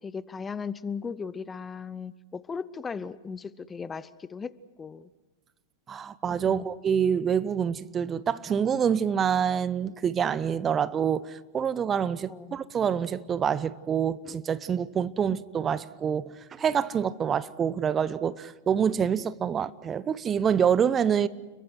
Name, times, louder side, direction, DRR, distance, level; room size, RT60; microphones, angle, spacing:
voice 1, 0.0-5.1 6.5-6.7 12.3-12.6 15.3-15.4, left 5 dB, 15° left, 0.7 m, -37 dB
voice 2, 5.9-21.3, right 8 dB, 25° right, 0.8 m, -26 dB
29.5 x 23.0 x 6.2 m
figure-of-eight pair, 95°, 0 cm